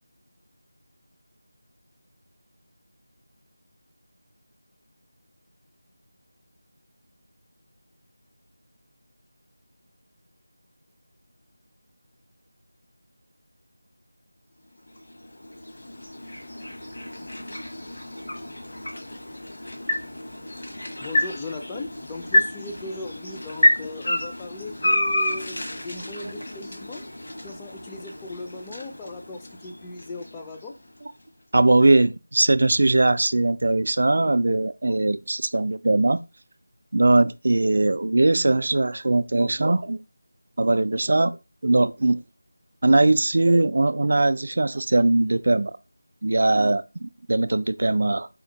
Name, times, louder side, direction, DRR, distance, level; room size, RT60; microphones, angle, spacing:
sound 1, 14.8-31.0, left 1 dB, 60° left, 1.3 m, -29 dB
voice 1, 21.0-27.1 27.4-30.7, left 3 dB, 15° left, 0.5 m, -38 dB
voice 2, 31.5-36.2 36.9-40.0 40.6-41.4 41.6-42.2 42.8-45.7 46.2-48.3, right 2 dB, 55° right, 0.3 m, -20 dB
4.3 x 2.4 x 3.9 m
figure-of-eight pair, 165°, 0 cm